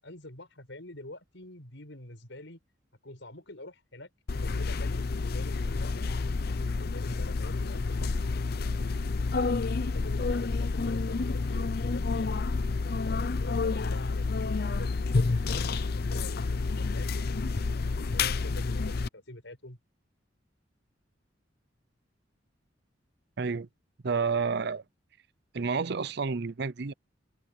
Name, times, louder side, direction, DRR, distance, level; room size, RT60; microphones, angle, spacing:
voice 1, 0.0-2.6 3.0-6.1 6.7-8.1 9.9-12.4 13.4-15.2 15.9-17.4 18.0-19.8, left 1 dB, 75° left, 5.9 m, -46 dB
sound 1, 4.3-19.1, left 3 dB, 55° left, 0.6 m, -29 dB
voice 2, 23.4-23.7 24.0-24.8 25.5-26.9, right 5 dB, 60° right, 0.6 m, -30 dB
head